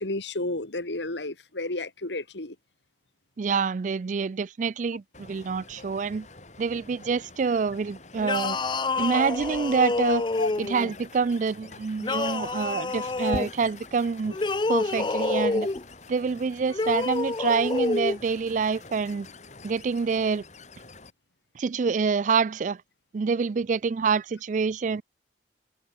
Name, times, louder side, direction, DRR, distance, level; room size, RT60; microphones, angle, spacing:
voice 1, 0.0-2.6 10.4-10.5, left 2 dB, 90° left, 2.6 m, -31 dB
voice 2, 3.4-6.3 6.6-8.6 9.0-10.2 10.6-14.4 14.7-15.7 16.1-19.3 19.6-20.4 21.6-22.8 23.1-25.0, right 5 dB, 45° right, 0.4 m, -26 dB
sound 1, 5.1-21.1, left 2 dB, 40° left, 4.9 m, -46 dB
sound 2, 8.2-10.9 12.0-13.5 14.3-15.8 16.7-18.2, left 3 dB, 25° left, 0.5 m, -28 dB
head